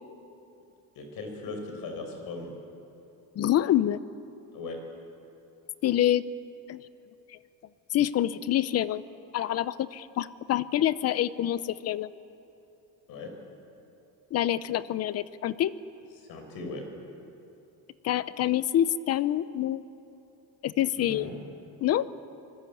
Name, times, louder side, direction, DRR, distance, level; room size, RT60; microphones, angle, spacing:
voice 1, 1.0-2.5 4.5-4.8 13.1-13.3 16.2-16.9 21.0-21.4, left 3 dB, 60° left, 4 dB, 5.5 m, -38 dB
voice 2, 3.4-4.0 5.8-6.2 6.7-6.8 7.9-9.0 9.3-12.1 14.3-15.7 18.0-19.8 20.6-21.3 21.8-22.1, left 12 dB, 40° left, 16 dB, 0.7 m, -26 dB
25.5 x 20.5 x 8.6 m, 2.8 s
cardioid pair, 160°, 39 cm